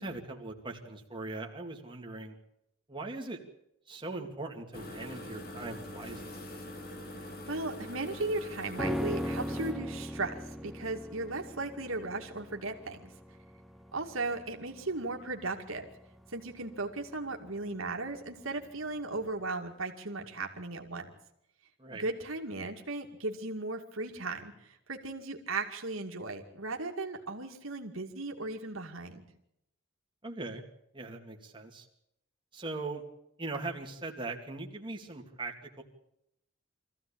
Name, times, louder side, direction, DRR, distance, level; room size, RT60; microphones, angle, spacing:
voice 1, 0.0-2.3 2.9-3.4 3.9-6.4 21.8-22.0 30.2-30.6 30.9-31.9 32.5-33.0 33.4-35.8, right 2 dB, 25° right, 1 dB, 2.5 m, -40 dB
sound 1, 4.7-9.7, left 1 dB, 50° left, 3.3 m, -44 dB
voice 2, 7.2-13.1 13.9-15.8 16.3-21.1 21.9-29.2, right 2 dB, 85° right, 3 dB, 2.4 m, -36 dB
sound 2, 8.8-18.2 18.5-18.6, equal, ahead, 0.8 m, -39 dB
24.0 x 15.0 x 8.7 m, 0.80 s
head